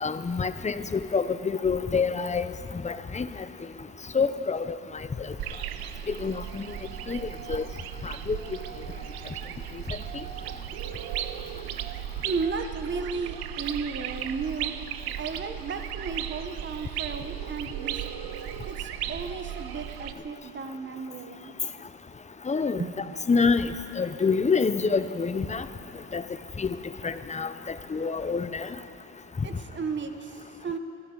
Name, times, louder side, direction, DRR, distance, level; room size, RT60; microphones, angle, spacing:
voice 1, 0.0-2.5 2.8-3.3 4.1-4.8 6.1-6.7 7.1-7.6 8.0-8.4 22.5-22.8 23.3-23.7 24.0-25.7 26.1-26.2 26.6-26.7 27.0-28.7, left 5 dB, 20° left, 12 dB, 0.6 m, -27 dB
sound 1, 5.4-20.1, right 11 dB, 70° right, 0.7 m, -36 dB
voice 2, 9.2-9.7 10.1-10.4 12.2-14.8 15.2-18.2 18.6-21.6 22.8-22.9 29.4-30.8, right 5 dB, 30° right, 7 dB, 1.2 m, -34 dB
24.0 x 14.5 x 3.9 m, 2.6 s
cardioid pair, 90°, 38 cm